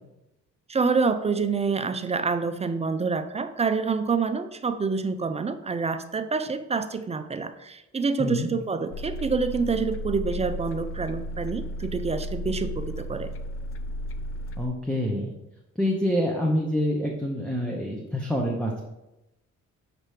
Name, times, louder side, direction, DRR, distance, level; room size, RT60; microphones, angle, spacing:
voice 1, 0.7-13.3, right 4 dB, 20° right, 10 dB, 0.4 m, -27 dB
sound 1, 8.9-14.7, equal, 45° left, 0.5 m, -34 dB
voice 2, 14.6-15.3 15.8-18.8, equal, 5° left, -1 dB, 0.8 m, -26 dB
6.6 x 3.0 x 4.9 m, 0.94 s
cardioid pair, 90°, 30 cm